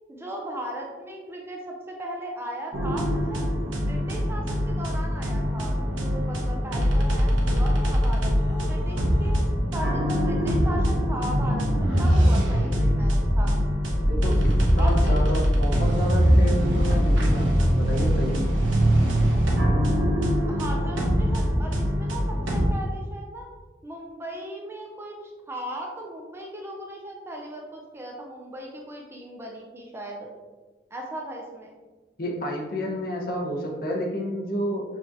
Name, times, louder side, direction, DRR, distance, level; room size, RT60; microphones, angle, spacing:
voice 1, 0.1-3.4 3.8-9.3 9.7-13.6 14.8-15.2 20.5-23.5 23.8-25.2 25.5-30.3 30.9-31.7, right 1 dB, 15° right, 0 dB, 0.5 m, -37 dB
sound 1, 2.7-22.7, equal, 85° right, 0.9 m, -22 dB
voice 2, 14.0-14.4 14.7-18.4 32.2-34.8, equal, 50° left, -1 dB, 0.8 m, -30 dB
5.8 x 2.9 x 2.6 m, 1.3 s
head